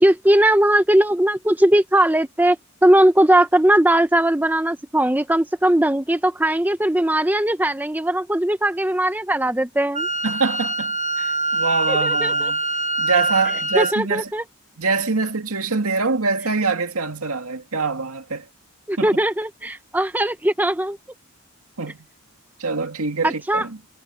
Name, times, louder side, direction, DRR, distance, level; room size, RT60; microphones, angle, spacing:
voice 1, 0.0-2.6 2.8-10.1 11.9-12.5 13.7-14.4 18.9-21.0 23.2-23.7, right 1 dB, 10° right, 0.6 m, -19 dB
Wind instrument woodwind instrument, 9.9-13.9, right 2 dB, 30° right, 1.5 m, -23 dB
voice 2, 10.2-12.6 13.0-14.3 14.8-18.5 19.0-19.1 21.8-22.0 22.6-23.8, right 4 dB, 80° right, 2.2 m, -24 dB
head